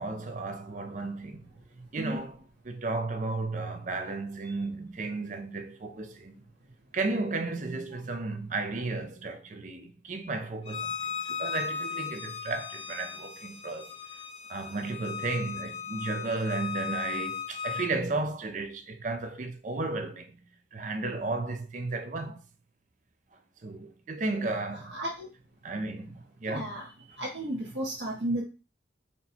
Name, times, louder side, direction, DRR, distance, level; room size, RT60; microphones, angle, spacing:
voice 1, 0.0-1.4 1.9-2.4 2.7-6.3 6.9-13.9 14.5-20.3 20.7-22.4 23.6-24.9 25.6-26.1 26.4-26.7, right 3 dB, 45° right, 0.5 m, -33 dB
Bowed string instrument, 10.7-17.9, left 6 dB, 30° left, 0.4 m, -37 dB
voice 2, 24.7-25.3 26.5-26.9 27.2-28.4, right 1 dB, 70° right, 0.9 m, -33 dB
4.2 x 2.2 x 4.2 m
head